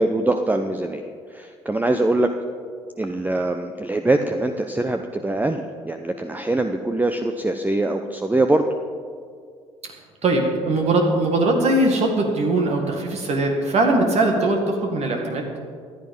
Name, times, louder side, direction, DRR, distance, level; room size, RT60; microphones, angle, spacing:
voice 1, 0.0-2.3 3.0-8.7, right 2 dB, 10° right, 6 dB, 0.8 m, -23 dB
voice 2, 10.2-15.5, right 2 dB, 45° right, 2 dB, 2.0 m, -20 dB
14.5 x 11.0 x 5.4 m, 2.1 s
figure-of-eight pair, 50°, 15 cm